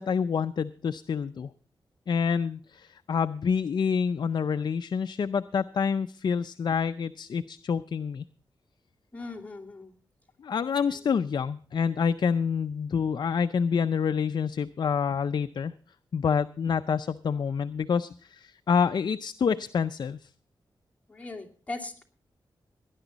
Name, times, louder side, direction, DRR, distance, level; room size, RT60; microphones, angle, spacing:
voice 1, 0.0-1.5 2.1-8.2 10.4-15.7 16.1-20.2, left 6 dB, 60° left, 10 dB, 0.5 m, -27 dB
voice 2, 9.1-10.0 10.9-11.0 21.1-22.0, left 2 dB, 15° left, 0 dB, 2.5 m, -39 dB
18.0 x 11.0 x 4.0 m, 0.43 s
wide cardioid pair, 85°, 8 cm